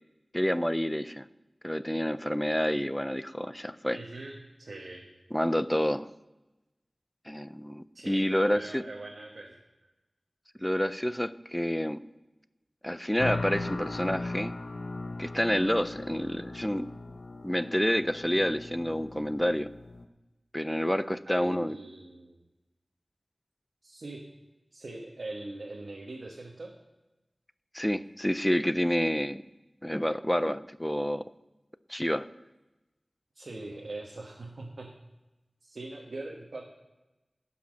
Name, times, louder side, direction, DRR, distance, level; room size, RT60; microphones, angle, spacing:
voice 1, 0.3-1.3 1.6-4.0 5.3-6.1 7.3-8.8 10.6-12.0 12.8-14.5 15.2-16.9 17.4-19.7 20.5-21.8 27.7-29.4 29.8-31.2 31.9-32.3, equal, 10° left, 14 dB, 0.5 m, -28 dB
voice 2, 3.9-5.1 7.9-9.6 21.3-22.4 23.8-24.2 24.7-26.7 33.3-34.9 35.6-36.6, right 2 dB, 80° right, -1 dB, 1.2 m, -42 dB
sound 1, 13.2-20.1, left 2 dB, 80° left, 0.7 m, -38 dB
14.5 x 5.8 x 6.3 m, 1.0 s
wide cardioid pair, 55°, 0 cm